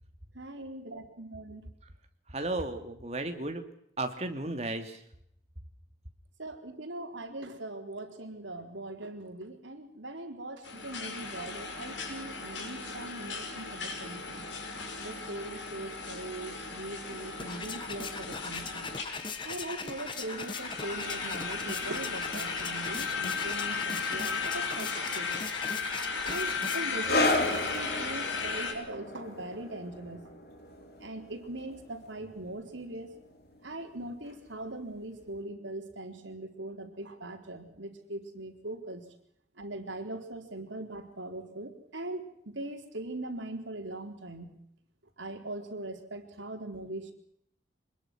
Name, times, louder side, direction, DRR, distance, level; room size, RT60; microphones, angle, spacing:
voice 1, 0.3-1.6 6.4-14.5 14.9-18.9 19.4-25.4 26.2-30.2 31.0-33.1 33.6-39.0 39.6-44.6 45.2-47.1, right 2 dB, 85° right, 5 dB, 4.2 m, -41 dB
voice 2, 2.3-3.6 4.0-5.0, right 2 dB, 35° right, 6 dB, 2.9 m, -34 dB
sound 1, 10.6-28.7, left 4 dB, 80° left, 6.1 m, -36 dB
sound 2, 17.0-27.1, left 4 dB, 25° left, 1.4 m, -40 dB
sound 3, 27.0-34.0 34.3-34.5 35.3-35.4, left 2 dB, 55° left, 4.6 m, -34 dB
25.5 x 21.5 x 6.3 m, 0.72 s
head